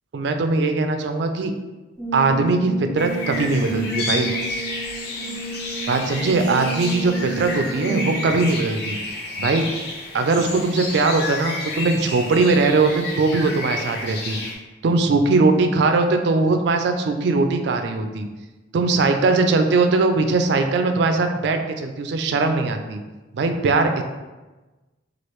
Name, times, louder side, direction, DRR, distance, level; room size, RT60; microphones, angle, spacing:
voice 1, 0.1-1.5 2.1-4.3 5.9-9.0 9.4-9.7 10.1-14.4 14.8-18.3 18.7-23.0 23.3-24.0, right 3 dB, 55° right, 6 dB, 0.3 m, -20 dB
Brass instrument, 2.0-8.4, right 5 dB, ahead, 0.9 m, -31 dB
sound 1, 3.0-14.5, left 2 dB, 55° left, 0.5 m, -31 dB
3.0 x 2.4 x 3.1 m, 1.2 s
head